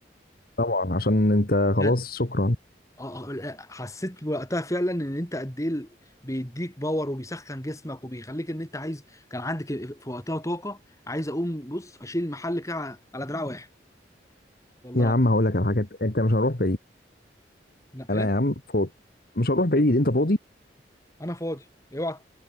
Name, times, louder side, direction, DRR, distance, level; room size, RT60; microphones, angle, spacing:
voice 1, 0.6-2.6 14.9-16.8 18.1-18.9 19.4-20.4, left 1 dB, 55° left, 2.0 m, -22 dB
voice 2, 3.0-5.9 6.2-10.8 11.1-13.7 14.8-15.1 17.9-18.3 21.2-21.7 21.9-22.2, left 1 dB, 20° left, 5.3 m, -31 dB
head